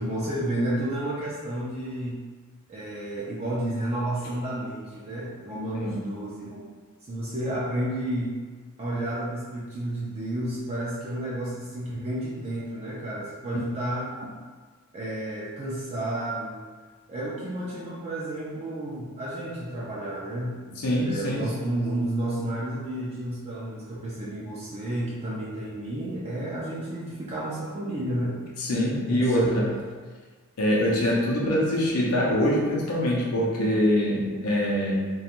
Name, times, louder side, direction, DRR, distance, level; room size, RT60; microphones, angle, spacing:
voice 1, 0.0-2.2 2.7-6.7 7.1-8.3 8.8-14.3 14.9-16.6 17.1-28.4 29.1-29.7, right 1 dB, 30° right, -7 dB, 0.3 m, -31 dB
voice 2, 20.8-21.5 28.6-29.7 30.6-35.1, equal, 90° left, -4 dB, 0.6 m, -24 dB
2.4 x 2.2 x 2.9 m, 1.5 s
head